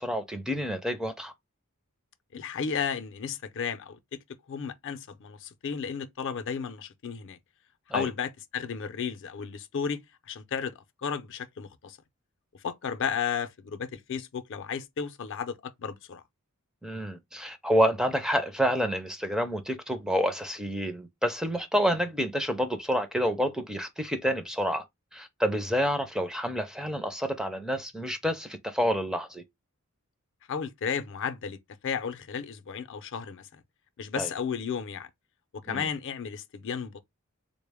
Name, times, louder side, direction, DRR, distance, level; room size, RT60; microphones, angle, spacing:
voice 1, 0.0-1.3 7.9-8.1 16.8-24.8 25.1-29.4 34.2-34.3 35.7-35.8, equal, 5° right, 0.4 m, -28 dB
voice 2, 2.3-4.2 4.5-7.4 7.9-10.7 11.0-12.0 12.5-16.2 30.5-31.6 31.8-33.5 34.0-35.1 35.5-37.0, left 6 dB, 60° left, 0.5 m, -33 dB
3.6 x 2.1 x 3.3 m
head